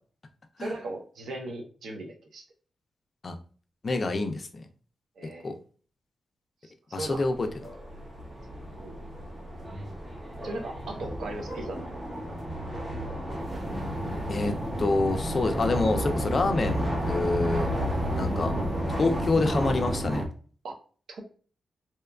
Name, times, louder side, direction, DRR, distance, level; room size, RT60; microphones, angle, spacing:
voice 1, 0.6-2.4 5.2-5.5 7.0-7.3 8.8-9.0 10.4-11.8 20.6-20.7 21.1-21.2, right 2 dB, 85° right, 3 dB, 0.6 m, -37 dB
voice 2, 3.8-4.6 5.4-5.5 6.9-7.5 14.3-17.7 18.2-18.5 19.0-20.2, left 3 dB, 45° left, 6 dB, 0.4 m, -27 dB
sound 1, 7.0-20.3, equal, 35° right, 0.7 m, -32 dB
2.8 x 2.3 x 2.2 m, 0.42 s
wide cardioid pair, 105°, 0 cm